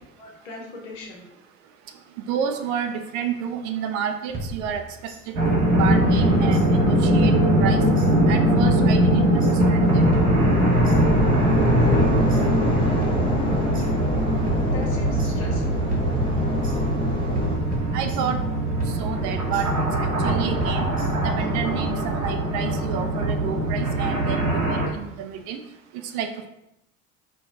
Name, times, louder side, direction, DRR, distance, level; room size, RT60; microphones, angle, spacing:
voice 1, 0.2-1.2 11.8-12.1 12.7-14.0 14.7-15.9, left 2 dB, 70° left, -1 dB, 1.0 m, -38 dB
voice 2, 2.2-4.8 5.5-7.3 7.6-7.8 8.3-10.0 17.9-18.4 19.0-19.7 20.0-20.9 21.2-25.6 26.1-26.5, right 7 dB, 50° right, 7 dB, 0.4 m, -30 dB
sound 1, 4.3-5.2 5.8-6.9 7.2-8.1 8.7-9.8 10.1-11.0 11.6-12.7 13.0-13.9 14.5-15.6 15.9-16.8 17.3-18.5 18.8-19.7 20.2-21.4, right 2 dB, 20° right, 0.7 m, -33 dB
sound 2, 5.3-24.9, right 1 dB, 80° right, 0.9 m, -21 dB
sound 3, 9.8-17.6, left 2 dB, 15° left, 0.5 m, -26 dB
4.4 x 2.2 x 2.6 m, 0.84 s
figure-of-eight pair, 60°, 40 cm